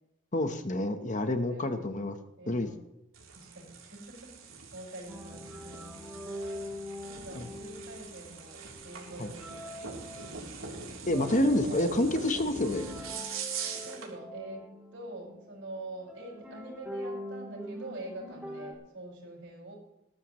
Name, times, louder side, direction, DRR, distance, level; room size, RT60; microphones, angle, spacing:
voice 1, 0.3-2.2 2.5-2.7 7.4-7.5 9.2-9.3 11.1-12.8, left 1 dB, 40° left, 9 dB, 1.1 m, -28 dB
voice 2, 1.5-2.1 2.4-2.8 3.3-6.2 7.0-10.5 13.1-13.2 13.8-19.7, right 2 dB, 65° right, -2 dB, 6.0 m, -46 dB
sound 1, 3.1-14.1, right 4 dB, 80° right, 3.5 m, -42 dB
sound 2, 5.1-18.7, left 1 dB, 5° right, 3.1 m, -44 dB
19.5 x 13.0 x 3.2 m, 0.89 s
head